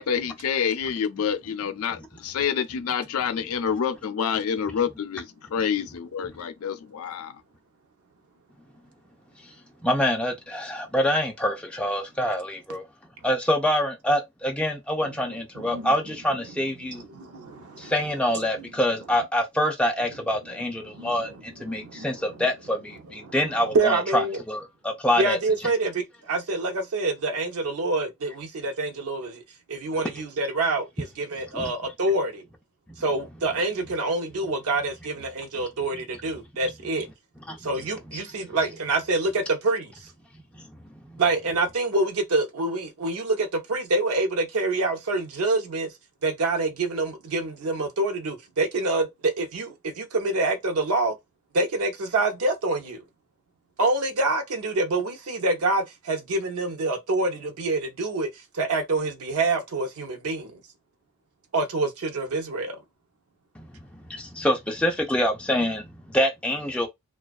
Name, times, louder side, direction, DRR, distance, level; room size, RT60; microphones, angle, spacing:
voice 1, 0.0-7.4, left 7 dB, 80° left, 0.4 m, -28 dB
voice 2, 9.8-12.8 13.2-17.0 17.8-25.4 31.5-31.7 32.9-33.0 35.9-36.0 36.6-36.7 37.5-37.7 38.1-38.2 40.6-40.7 41.0-41.2 63.6-66.9, left 1 dB, 5° left, 0.4 m, -26 dB
voice 3, 15.5-15.9 16.8-17.9 20.8-21.2 21.7-22.4 23.2-23.3 23.7-24.4 25.2-29.4 29.7-32.4 33.0-37.1 37.6-39.9 41.2-45.9 46.2-51.1 51.5-53.0 53.8-60.6 61.5-62.8, right 2 dB, 85° right, 0.6 m, -26 dB
2.5 x 2.2 x 2.3 m
head